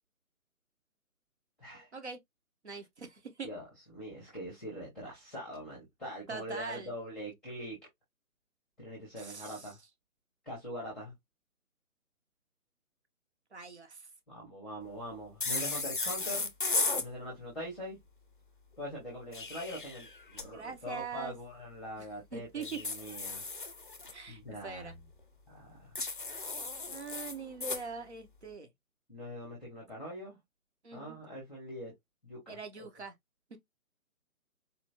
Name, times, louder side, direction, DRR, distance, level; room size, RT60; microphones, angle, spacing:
voice 1, 2.6-3.5 6.3-6.9 9.2-9.7 13.5-14.1 20.5-21.3 22.0-22.1 22.3-22.8 24.1-25.0 26.9-28.7 30.8-31.2 32.5-33.1 33.5-33.6, right 4 dB, 50° right, 1.2 m, -42 dB
voice 2, 3.9-7.8 8.8-9.8 10.4-11.1 14.3-16.5 17.0-18.0 18.8-23.4 24.3-24.9 25.5-26.0 29.1-30.4 30.9-31.9 32.2-32.9, equal, ahead, 1.0 m, -43 dB
sound 1, 15.4-17.1 19.1-20.5 22.6-24.1 26.0-27.8, left 3 dB, 35° left, 0.5 m, -35 dB
4.3 x 3.1 x 2.8 m
figure-of-eight pair, 145°, 42 cm